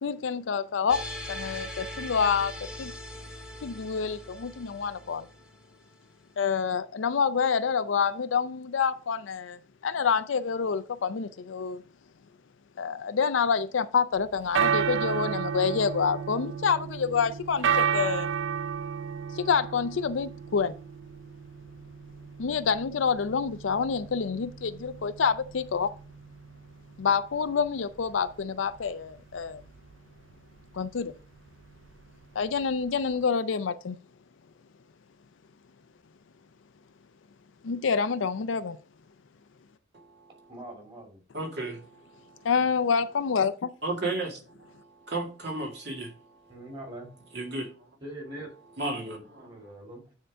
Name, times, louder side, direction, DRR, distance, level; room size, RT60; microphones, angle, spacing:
voice 1, 0.0-2.5 2.8-2.9 3.6-5.3 6.4-9.6 9.8-11.8 12.8-18.3 19.4-20.7 22.4-25.9 27.0-29.6 30.7-31.1 32.4-34.0 37.6-38.8 42.4-43.7, left 6 dB, 90° left, 0.5 m, -27 dB
sound 1, 0.9-6.0, left 1 dB, 5° right, 1.3 m, -41 dB
sound 2, 14.2-33.2, right 7 dB, 85° right, 0.5 m, -33 dB
voice 2, 39.9-40.5 41.3-42.5 43.8-46.6 47.3-47.9 48.8-49.5, right 2 dB, 60° right, 2.0 m, -35 dB
voice 3, 40.5-41.2 46.5-47.1 48.0-48.5 49.4-50.0, right 1 dB, 25° right, 2.6 m, -42 dB
9.3 x 3.8 x 4.9 m
head